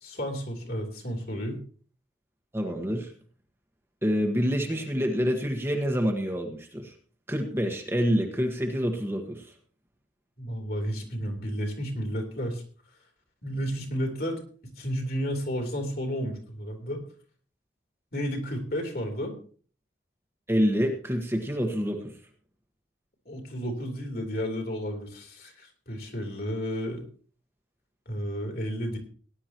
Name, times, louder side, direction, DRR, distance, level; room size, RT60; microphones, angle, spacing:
voice 1, 0.0-1.6 10.4-12.6 13.4-17.0 18.1-19.3 23.2-27.0 28.0-29.0, equal, 55° left, 2 dB, 3.4 m, -32 dB
voice 2, 2.5-3.1 4.0-6.9 7.3-9.5 20.5-22.1, equal, 15° right, 2 dB, 1.4 m, -27 dB
18.0 x 11.0 x 3.0 m, 0.43 s
head